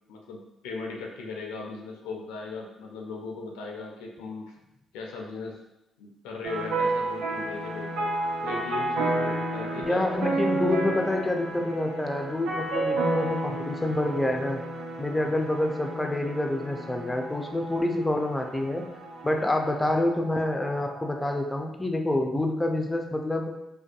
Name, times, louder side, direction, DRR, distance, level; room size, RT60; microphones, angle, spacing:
voice 1, 0.1-4.6 4.9-5.6 6.0-7.9 8.4-10.0, left 3 dB, 85° left, 0 dB, 0.4 m, -38 dB
sound 1, 6.4-21.4, right 2 dB, 75° right, 0.4 m, -32 dB
voice 2, 9.8-14.6 15.0-18.9 19.2-23.5, left 1 dB, 15° left, 3 dB, 0.4 m, -27 dB
2.6 x 2.2 x 2.4 m, 0.89 s
hypercardioid pair, 55°, 0 cm